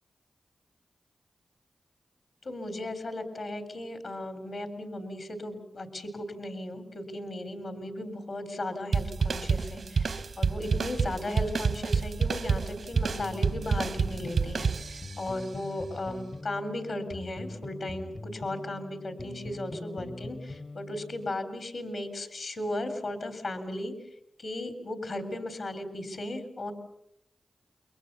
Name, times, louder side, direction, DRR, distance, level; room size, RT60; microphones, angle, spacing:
voice 1, 2.4-23.9 24.4-26.7, left 1 dB, 75° left, 9 dB, 3.7 m, -36 dB
sound 1, 8.9-15.3, right 5 dB, 80° right, 1.1 m, -28 dB
sound 2, 12.9-21.4, left 2 dB, 45° left, 1.0 m, -43 dB
28.5 x 22.5 x 7.0 m, 0.78 s
cardioid pair, 40°, 0 cm